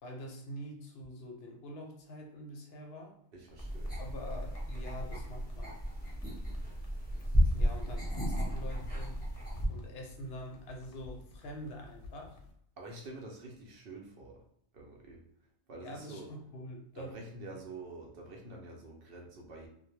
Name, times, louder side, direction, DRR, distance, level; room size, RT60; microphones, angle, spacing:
voice 1, 0.0-3.2 4.0-5.8 7.5-9.2 9.7-12.4 15.8-17.1, equal, 65° left, 1 dB, 0.8 m, -45 dB
voice 2, 3.3-4.0 7.6-8.0 12.8-14.4 14.7-15.3 15.7-16.3 16.9-19.7, right 2 dB, 60° right, 0 dB, 0.7 m, -47 dB
sound 1, 3.5-12.5, left 2 dB, 85° left, 0.9 m, -53 dB
sound 2, 3.6-9.7, equal, 10° left, 0.7 m, -33 dB
2.1 x 2.1 x 3.0 m, 0.69 s
omnidirectional pair, 1.2 m